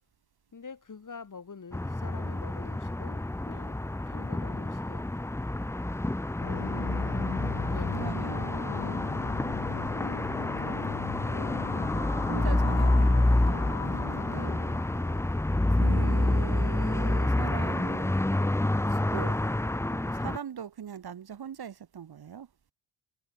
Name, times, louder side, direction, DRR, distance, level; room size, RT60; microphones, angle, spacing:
voice 1, 0.5-3.8 4.1-5.3 7.7-8.2 8.7-9.1, left 5 dB, 40° left, 4.2 m, -46 dB
sound 1, 1.7-20.4, left 1 dB, 5° left, 0.6 m, -28 dB
sound 2, 6.4-15.4, left 11 dB, 80° left, 2.8 m, -39 dB
voice 2, 6.6-8.8 10.4-10.9 12.3-14.6 15.7-18.1 18.9-19.4 19.9-22.5, right 8 dB, 50° right, 1.4 m, -41 dB
cardioid pair, 90°, 50 cm